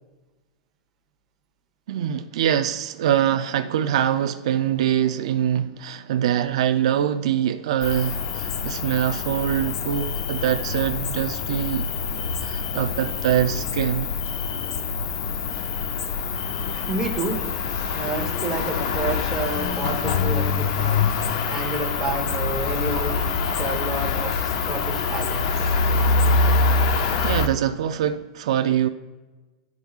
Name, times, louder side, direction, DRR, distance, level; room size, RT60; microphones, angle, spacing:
voice 1, 1.9-11.9 12.4-14.3 27.2-28.9, right 10 dB, 70° right, 0.4 m, -24 dB
Cricket, 7.8-27.5, left 4 dB, 50° left, 0.6 m, -25 dB
voice 2, 16.6-17.4 17.9-21.1 21.5-23.3 23.5-25.5, right 3 dB, 10° right, 1.0 m, -30 dB
12.0 x 4.5 x 2.4 m
supercardioid pair, 165°, 3 cm